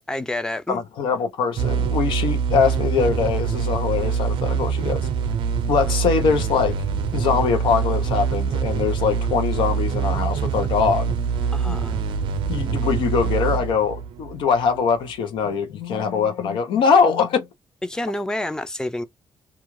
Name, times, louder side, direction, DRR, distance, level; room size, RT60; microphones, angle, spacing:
voice 1, 0.1-0.8 11.5-12.0 17.8-19.0, left 1 dB, 10° left, 0.4 m, -28 dB
voice 2, 0.7-5.0 5.7-6.8 7.1-11.1 11.6-11.8 12.5-17.5, left 6 dB, 80° left, 0.7 m, -22 dB
sound 1, 1.6-14.9, right 6 dB, 85° right, 0.5 m, -24 dB
2.4 x 2.3 x 3.0 m
cardioid pair, 115°, 8 cm